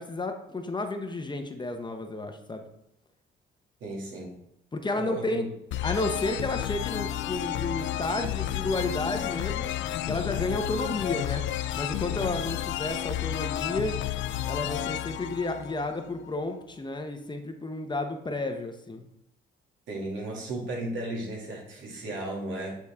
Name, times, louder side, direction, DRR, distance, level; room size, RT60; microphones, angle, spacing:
voice 1, 0.0-2.7 4.7-5.5 5.8-9.7 10.1-11.4 11.7-13.9 14.4-19.1, left 2 dB, 20° left, 5 dB, 0.9 m, -32 dB
voice 2, 3.8-4.3 4.9-5.4 19.9-22.8, right 1 dB, 80° right, -2 dB, 2.4 m, -35 dB
sound 1, 5.7-16.3, left 12 dB, 75° left, 0.4 m, -31 dB
8.6 x 4.1 x 3.5 m, 0.83 s
cardioid pair, 90°, 20 cm